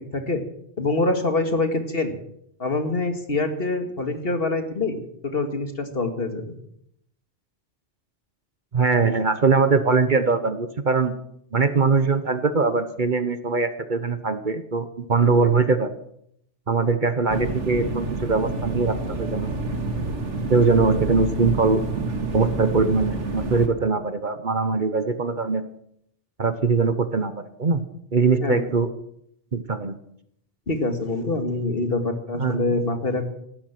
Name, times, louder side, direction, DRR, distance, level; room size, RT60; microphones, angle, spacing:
voice 1, 0.8-2.2 2.6-5.0 5.3-6.5 28.4-28.6 30.7-33.2, left 2 dB, 55° left, 6 dB, 2.2 m, -25 dB
voice 2, 8.7-11.1 11.5-15.9 16.7-19.6 20.5-21.8 22.3-25.6 26.4-27.8 28.1-28.9 29.5-30.0 32.4-32.8, right 4 dB, 45° right, 11 dB, 1.1 m, -22 dB
sound 1, 17.3-23.7, right 3 dB, 90° right, 2.2 m, -28 dB
17.5 x 13.0 x 6.0 m, 0.72 s
omnidirectional pair, 1.2 m